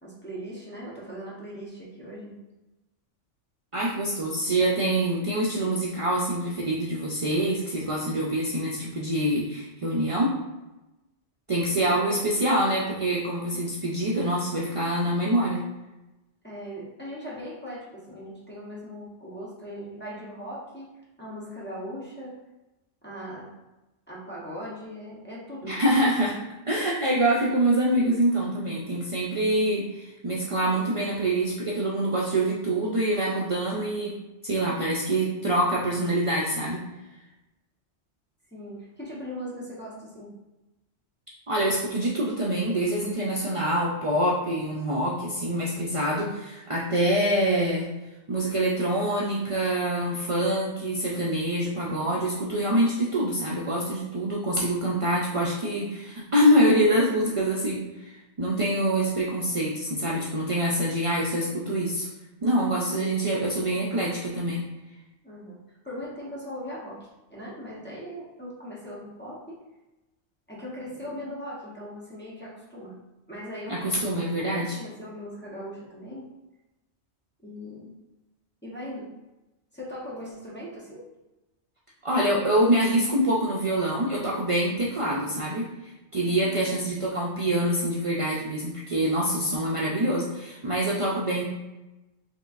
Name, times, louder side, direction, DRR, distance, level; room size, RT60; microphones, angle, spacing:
voice 1, 0.0-2.4 11.8-12.2 16.4-20.9 21.2-22.4 23.0-23.5 24.1-26.2 38.5-40.3 63.0-63.3 65.2-65.6 65.8-69.6 70.5-73.0 73.3-76.3 77.4-77.9 78.6-79.1 79.7-81.1 86.2-86.7, equal, 10° left, -7 dB, 0.9 m, -39 dB
voice 2, 3.7-10.3 11.5-15.6 25.6-26.3 26.7-34.1 34.4-36.8 41.5-47.9 48.3-62.1 62.4-64.7 73.7-74.8 82.0-91.5, right 1 dB, 60° right, -4 dB, 0.3 m, -25 dB
4.4 x 3.1 x 2.5 m, 1.0 s
omnidirectional pair, 1.2 m